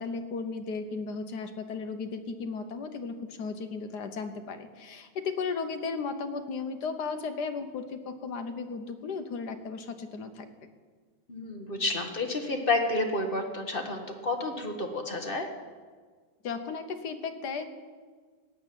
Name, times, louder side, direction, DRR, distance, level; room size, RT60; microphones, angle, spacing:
voice 1, 0.0-10.7 16.4-17.6, left 4 dB, 65° left, 8 dB, 1.5 m, -35 dB
voice 2, 11.3-15.5, left 2 dB, 35° left, 4 dB, 1.3 m, -30 dB
13.5 x 8.6 x 9.2 m, 1.5 s
omnidirectional pair, 2.0 m